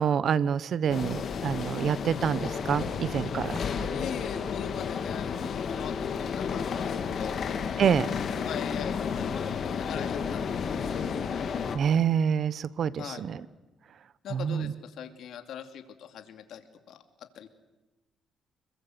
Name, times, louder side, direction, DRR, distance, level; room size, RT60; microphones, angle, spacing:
voice 1, 0.0-3.6 7.8-8.1 11.7-13.4 14.3-14.7, right 7 dB, 60° right, 17 dB, 1.0 m, -27 dB
sound 1, 0.9-11.8, left 6 dB, 55° left, 2.7 m, -32 dB
voice 2, 3.9-7.4 8.4-11.1 13.0-13.2 14.2-17.5, left 9 dB, 75° left, 7 dB, 2.6 m, -41 dB
26.5 x 22.0 x 8.1 m, 1.1 s
cardioid pair, 90°, 0 cm